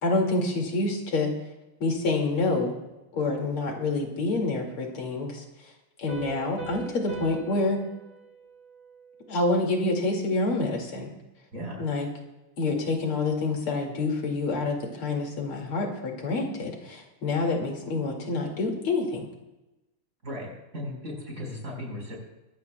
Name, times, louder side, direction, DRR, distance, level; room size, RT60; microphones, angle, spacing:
voice 1, 0.0-1.3 1.8-2.7 3.1-5.4 6.0-7.8 9.3-11.1 11.8-12.1 12.6-19.3, left 3 dB, 90° left, 1 dB, 3.4 m, -27 dB
Piano, 6.1-9.5, right 4 dB, 55° right, 7.2 m, -42 dB
voice 2, 11.5-11.8 20.2-22.2, left 1 dB, 35° right, -1 dB, 5.5 m, -36 dB
23.0 x 15.5 x 2.3 m, 1.0 s
omnidirectional pair, 2.3 m